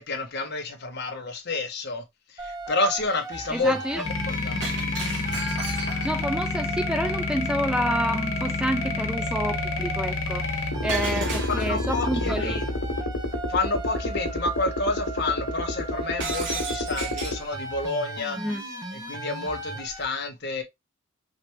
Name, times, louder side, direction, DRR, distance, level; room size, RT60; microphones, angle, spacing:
voice 1, 0.0-2.0 2.3-4.6 11.5-13.1 13.5-18.4 18.9-20.6, left 3 dB, 55° left, 1.3 m, -29 dB
sound 1, 2.4-20.0, right 2 dB, 20° right, 1.2 m, -37 dB
voice 2, 3.5-4.0 6.0-10.5 10.8-12.6 18.4-18.6, equal, 5° right, 0.3 m, -28 dB
sound 2, 4.0-17.4, left 2 dB, 85° left, 1.7 m, -29 dB
Shatter, 4.6-6.3 10.9-11.9 16.2-17.5, right 4 dB, 60° right, 2.1 m, -34 dB
5.0 x 3.3 x 3.1 m
head